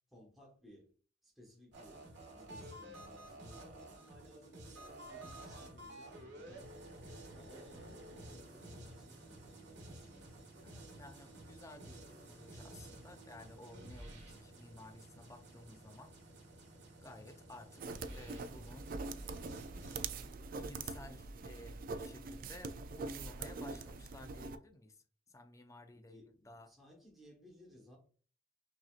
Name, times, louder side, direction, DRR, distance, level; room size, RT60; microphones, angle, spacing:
voice 1, 0.1-0.9 1.2-6.7 7.3-10.1 12.8-13.1 15.5-15.8 25.9-28.0, equal, ahead, 1.2 m, -60 dB
sound 1, 1.7-20.3, right 1 dB, 70° right, 1.4 m, -52 dB
voice 2, 10.6-16.1 17.0-18.9 20.5-26.7, left 1 dB, 15° left, 0.5 m, -55 dB
sound 2, 17.8-24.6, right 3 dB, 50° right, 0.3 m, -43 dB
5.9 x 2.7 x 2.4 m
head